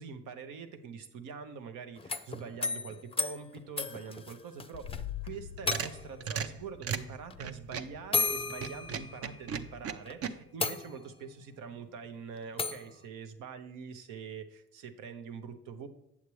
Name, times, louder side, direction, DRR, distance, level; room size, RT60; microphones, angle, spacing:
voice 1, 0.0-15.9, right 6 dB, 90° right, 8 dB, 0.9 m, -44 dB
sound 1, 2.0-5.0 5.3-5.4 5.7-6.2 7.3-7.4 8.1-9.5 10.1-10.2 10.6-11.3 12.6-12.9, left 4 dB, 20° left, 0.5 m, -34 dB
sound 2, 4.7-10.3, left 11 dB, 75° left, 0.5 m, -46 dB
sound 3, 5.3-8.0 8.5-10.3, right 7 dB, 50° right, 0.6 m, -37 dB
8.2 x 7.2 x 3.1 m, 0.85 s
cardioid pair, 90°, 30 cm